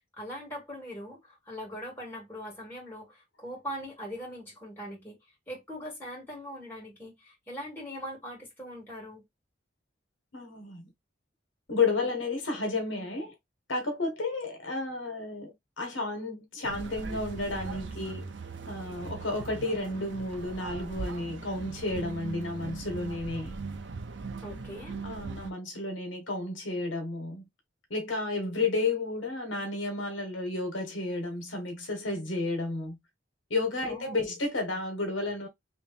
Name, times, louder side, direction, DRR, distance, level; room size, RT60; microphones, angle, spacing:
voice 1, 0.2-1.2 1.5-5.2 5.5-9.2 24.4-25.0 33.9-34.3, equal, 10° left, 2.2 m, -41 dB
voice 2, 10.3-10.9 11.7-13.3 13.7-18.3 18.7-23.6 25.0-27.4 27.9-33.0 33.5-35.5, left 3 dB, 75° left, 1.3 m, -32 dB
sound 1, 16.6-25.5, right 4 dB, 65° right, 0.6 m, -40 dB
3.0 x 3.0 x 3.3 m
head